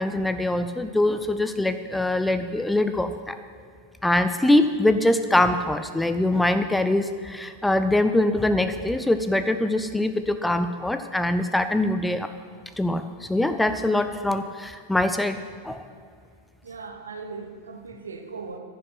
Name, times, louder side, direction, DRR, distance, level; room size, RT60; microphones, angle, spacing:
voice 1, 0.0-3.4 4.0-12.3 12.8-15.8, left 1 dB, 5° left, 10 dB, 0.4 m, -23 dB
voice 2, 16.6-18.6, right 4 dB, 70° right, 5 dB, 1.0 m, -38 dB
14.5 x 5.9 x 5.8 m, 2.1 s
figure-of-eight pair, 90°, 0 cm